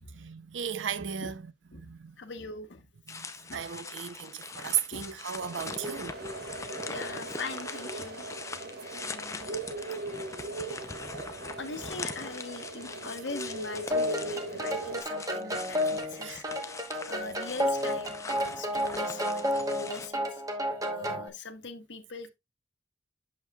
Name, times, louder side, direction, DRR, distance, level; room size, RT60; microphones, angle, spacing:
voice 1, 0.1-1.5 1.7-2.2 3.1-3.3 3.5-6.2 16.1-16.4, right 8 dB, 80° right, 0.6 m, -35 dB
voice 2, 2.2-2.8 3.5-3.7 4.9-5.1 6.9-8.3 9.0-9.6 10.6-10.8 11.6-16.4 17.1-19.4 19.7-20.4 20.9-22.3, left 3 dB, 70° left, 1.0 m, -41 dB
sound 1, 3.1-20.1, left 4 dB, 15° left, 0.5 m, -42 dB
sound 2, 5.4-15.0, right 3 dB, 55° right, 1.2 m, -39 dB
sound 3, 13.9-21.3, left 1 dB, 20° right, 1.0 m, -31 dB
8.3 x 6.3 x 2.3 m
head